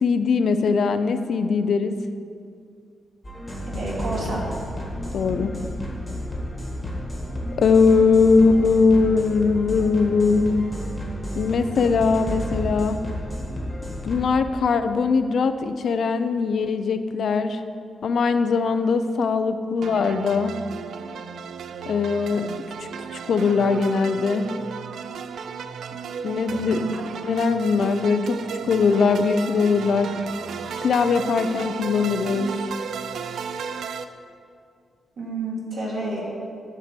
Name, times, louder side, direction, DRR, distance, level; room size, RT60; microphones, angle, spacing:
voice 1, 0.0-2.0 5.1-5.6 7.6-10.7 11.3-13.0 14.0-17.6 18.0-20.6 21.9-22.5 22.8-24.5 26.2-26.8 27.2-30.2 30.8-32.5, left 4 dB, 55° left, 10 dB, 0.4 m, -21 dB
sound 1, 3.2-14.2, equal, 10° left, 1.5 m, -31 dB
voice 2, 3.7-4.4 26.5-26.9 35.2-36.2, right 2 dB, 55° right, -5 dB, 2.5 m, -29 dB
sound 2, 19.8-34.1, right 6 dB, 75° right, 0.4 m, -34 dB
10.0 x 4.7 x 7.6 m, 2.3 s
wide cardioid pair, 175°, 0 cm